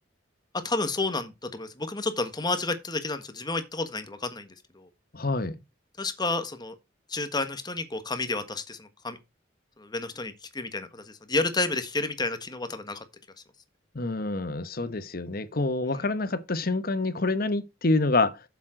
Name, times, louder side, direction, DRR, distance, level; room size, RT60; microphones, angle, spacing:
voice 1, 0.6-4.5 4.7-4.9 6.0-6.7 7.1-9.2 9.8-13.0, left 3 dB, 20° left, 1.4 m, -30 dB
voice 2, 5.1-5.6 13.9-18.4, left 2 dB, 50° left, 1.0 m, -27 dB
7.6 x 7.4 x 4.4 m
head